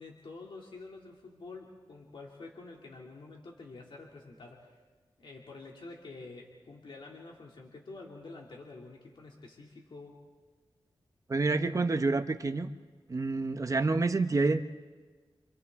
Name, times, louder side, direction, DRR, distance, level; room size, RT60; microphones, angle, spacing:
voice 1, 0.0-4.7 5.2-10.2, left 3 dB, 65° left, -1 dB, 2.6 m, -48 dB
voice 2, 11.3-12.7 13.1-14.6, right 3 dB, 35° right, 8 dB, 0.8 m, -28 dB
28.5 x 26.5 x 3.6 m, 1.4 s
wide cardioid pair, 125°, 9 cm